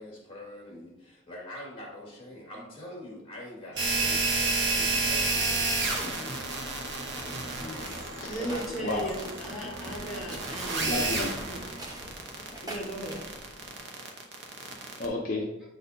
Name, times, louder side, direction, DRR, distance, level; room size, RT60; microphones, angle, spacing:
voice 1, 0.0-6.2 8.3-8.9, left 1 dB, 30° left, -3 dB, 1.8 m, -44 dB
sound 1, 3.8-15.1, right 3 dB, 60° right, 0.9 m, -30 dB
sound 2, 5.9-12.1, right 1 dB, 85° right, 1.2 m, -44 dB
sound 3, 7.1-13.8, right 1 dB, 20° right, 0.9 m, -46 dB
voice 2, 7.6-8.5 8.8-9.1 9.9-10.0 10.9-11.3 15.0-15.5, left 2 dB, 45° left, -2 dB, 0.6 m, -33 dB
voice 3, 8.2-11.1 11.5-11.6 12.6-13.2, right 1 dB, ahead, -8 dB, 2.0 m, -36 dB
8.7 x 4.1 x 2.7 m, 0.92 s
head